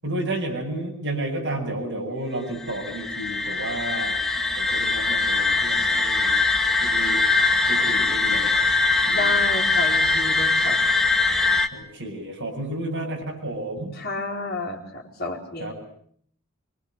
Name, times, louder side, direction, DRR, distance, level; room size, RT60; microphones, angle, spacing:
voice 1, 0.0-4.2 4.6-6.3 6.8-7.2 7.7-8.5 9.1-9.3 11.7-13.9 15.6-15.7, right 1 dB, 55° right, 1 dB, 7.9 m, -31 dB
sound 1, 2.6-11.7, left 3 dB, ahead, 1.4 m, -22 dB
voice 2, 9.1-10.8 14.0-15.7, left 2 dB, 45° left, -1 dB, 4.5 m, -31 dB
25.0 x 23.5 x 8.1 m, 0.62 s
head